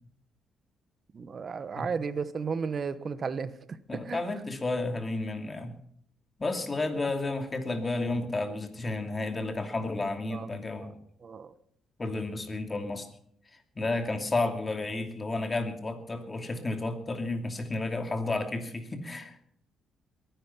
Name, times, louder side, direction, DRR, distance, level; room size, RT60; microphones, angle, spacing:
voice 1, 1.1-4.2 10.3-10.5 10.8-10.9 11.2-11.5, right 5 dB, 45° right, 14 dB, 1.1 m, -34 dB
voice 2, 3.9-5.8 6.4-11.0 12.0-13.1 13.8-19.5, left 2 dB, 25° left, 6 dB, 2.6 m, -32 dB
22.0 x 10.5 x 5.7 m, 0.67 s
cardioid pair, 90°, 0 cm